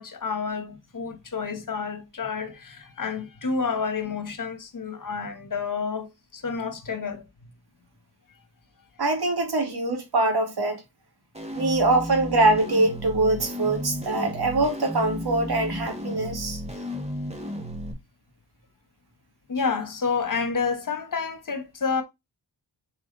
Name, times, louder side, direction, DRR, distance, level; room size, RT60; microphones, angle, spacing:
voice 1, 0.0-7.3 19.5-22.0, left 5 dB, 55° left, 1.4 m, -29 dB
voice 2, 9.0-10.8 11.5-16.6, right 2 dB, 75° right, 2.3 m, -23 dB
sound 1, 11.3-17.9, equal, 15° right, 2.1 m, -33 dB
5.0 x 4.9 x 4.0 m
cardioid pair, 65°, 39 cm